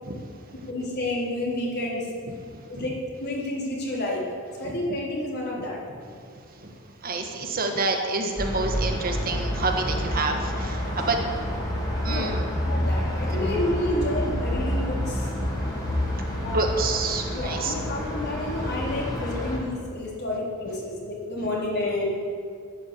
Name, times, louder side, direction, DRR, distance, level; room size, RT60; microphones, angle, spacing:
voice 1, 0.7-2.1 2.7-2.9 3.2-4.2 4.6-5.8 12.0-12.3 12.6-15.3 16.4-16.7 17.3-22.2, left 1 dB, 45° left, -4 dB, 3.9 m, -30 dB
voice 2, 6.5-11.4 12.0-12.5 13.3-13.5 15.4-15.6 15.8-15.9 16.5-17.7, right 3 dB, 40° right, 4 dB, 1.4 m, -28 dB
sound 1, 8.4-19.6, equal, 15° left, 3.4 m, -28 dB
12.0 x 11.5 x 8.5 m, 2.2 s
head